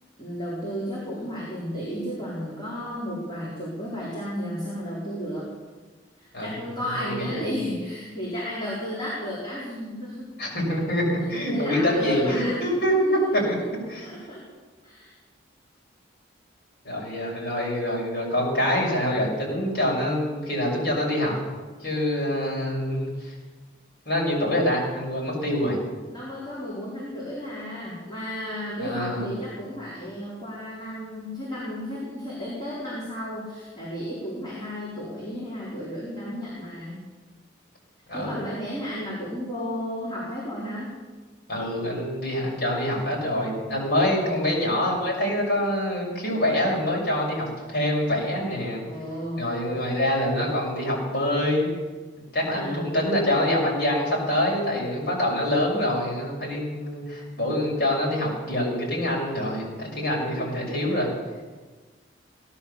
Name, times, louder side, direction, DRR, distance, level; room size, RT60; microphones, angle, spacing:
voice 1, 0.2-5.5 6.2-10.3 11.5-13.6 14.0-14.4 14.8-15.1 26.1-37.0 38.1-40.9 44.1-44.5 48.9-49.5 52.5-52.8 60.2-60.6, equal, 25° left, -8 dB, 4.3 m, -33 dB
voice 2, 7.0-7.5 10.4-13.6 13.9-14.1 16.8-21.4 21.8-23.3 24.0-25.8 28.8-29.3 38.1-38.4 41.5-48.8 49.4-51.7 52.3-61.1, left 1 dB, 55° left, -3 dB, 6.6 m, -25 dB
17.5 x 11.5 x 7.1 m, 1.3 s
head